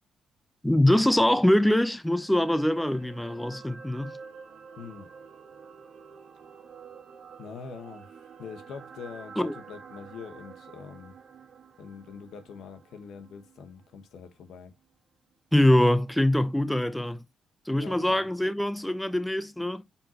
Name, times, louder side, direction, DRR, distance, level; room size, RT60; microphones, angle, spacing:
voice 1, 0.6-4.2 9.4-9.5 15.5-17.2 17.7-19.8, left 1 dB, 5° left, 0.8 m, -23 dB
sound 1, 2.0-14.3 14.7-14.8, right 6 dB, 65° right, 1.5 m, -49 dB
voice 2, 4.8-5.1 7.4-11.2 11.8-14.7 17.8-18.3, left 6 dB, 80° left, 1.3 m, -44 dB
7.0 x 4.7 x 2.9 m
cardioid pair, 75°, 0 cm